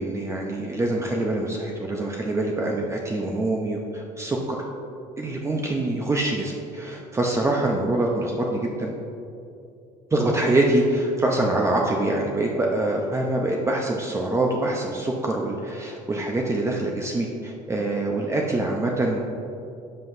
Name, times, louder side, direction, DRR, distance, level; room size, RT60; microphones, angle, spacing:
voice 1, 0.0-4.6 5.2-9.0 10.1-19.2, right 2 dB, 15° right, -1 dB, 0.7 m, -25 dB
11.0 x 5.7 x 2.7 m, 2.6 s
cardioid pair, 105°, 16 cm